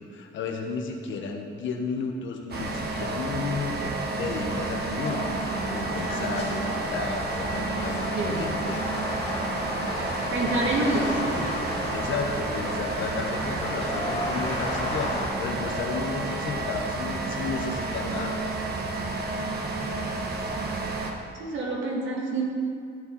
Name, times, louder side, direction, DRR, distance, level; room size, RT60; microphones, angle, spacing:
voice 1, 0.0-3.9 4.2-5.3 5.6-8.8 11.9-18.4, left 4 dB, 75° left, 2 dB, 1.4 m, -33 dB
sound 1, 2.5-21.1, right 3 dB, 55° right, 1.4 m, -31 dB
sound 2, 5.0-15.3, left 1 dB, 35° left, 3.0 m, -33 dB
voice 2, 8.1-8.6 10.3-11.4 21.4-22.4, right 2 dB, 70° right, -3 dB, 2.6 m, -27 dB
14.0 x 7.2 x 4.2 m, 2.3 s
cardioid pair, 90°, 20 cm